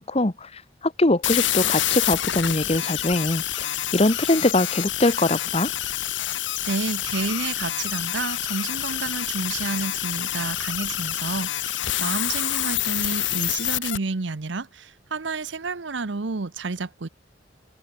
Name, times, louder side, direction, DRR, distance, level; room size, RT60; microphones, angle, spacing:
voice 1, 0.0-5.7, left 2 dB, 30° left, 1.3 m, -23 dB
sound 1, 1.2-14.0, left 13 dB, 75° left, 1.3 m, -27 dB
voice 2, 6.6-17.1, right 3 dB, 75° right, 0.9 m, -30 dB
head